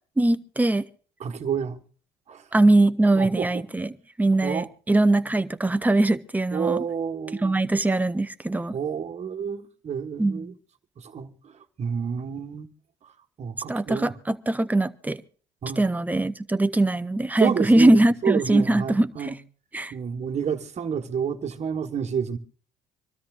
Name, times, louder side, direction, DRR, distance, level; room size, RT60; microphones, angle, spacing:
voice 1, 0.2-0.9 2.5-6.8 7.3-8.8 10.2-10.5 13.7-15.2 15.8-19.3 19.7-19.9, right 2 dB, 10° right, 0.7 m, -22 dB
voice 2, 1.2-1.8 2.3-2.4 3.2-3.6 4.4-4.7 6.5-7.6 8.7-10.5 11.0-11.3 11.8-12.7 13.4-14.1 15.6-15.8 17.4-19.4 19.9-22.4, right 7 dB, 40° right, 1.5 m, -29 dB
25.5 x 13.0 x 2.5 m
cardioid pair, 110°, 17 cm